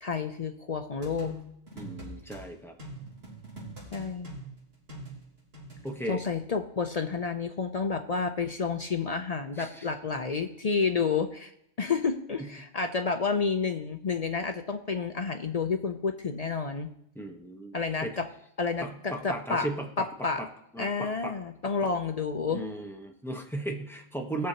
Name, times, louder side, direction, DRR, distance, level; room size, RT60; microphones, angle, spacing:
voice 1, 0.0-1.3 3.9-4.3 6.1-11.5 11.8-16.9 17.7-18.2 18.6-19.7 20.0-20.4 20.8-22.6, left 5 dB, 55° left, 6 dB, 0.4 m, -30 dB
sound 1, 1.0-2.4 2.8-5.9, equal, 55° right, 3.5 m, -43 dB
voice 2, 1.7-2.7 5.8-6.2 9.6-9.9 12.4-12.5 17.1-18.2 18.8-20.1 20.4-20.5 20.7-21.3 21.8-21.9 22.5-24.5, right 1 dB, ahead, 1 dB, 1.0 m, -36 dB
19.0 x 6.6 x 2.9 m, 0.75 s
omnidirectional pair, 1.3 m